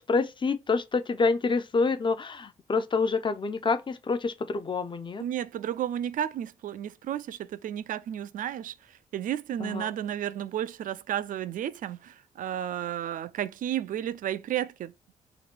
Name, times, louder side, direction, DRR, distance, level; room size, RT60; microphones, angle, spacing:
voice 1, 0.0-5.2 9.6-9.9, left 4 dB, 30° left, 0.6 m, -27 dB
voice 2, 5.2-8.7 9.1-14.9, right 10 dB, 55° right, 0.4 m, -32 dB
3.0 x 2.3 x 4.2 m
hypercardioid pair, 40°, 17 cm